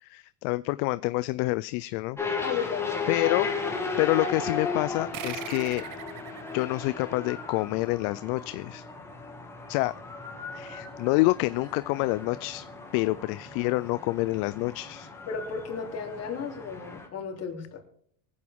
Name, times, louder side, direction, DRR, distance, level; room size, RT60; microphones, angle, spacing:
voice 1, 0.0-2.2 3.1-3.5 4.0-5.8 6.5-8.8 9.7-9.9 10.5-12.6 12.9-15.1, left 21 dB, 55° left, 16 dB, 0.5 m, -27 dB
sound 1, 2.2-17.1, left 4 dB, 5° left, 2.1 m, -35 dB
voice 2, 2.4-3.1 15.3-17.8, left 6 dB, 35° left, 0 dB, 3.8 m, -34 dB
sound 2, 5.1-8.2, right 13 dB, 45° right, 1.0 m, -42 dB
24.0 x 8.6 x 3.6 m, 0.62 s
supercardioid pair, 145°, 45 cm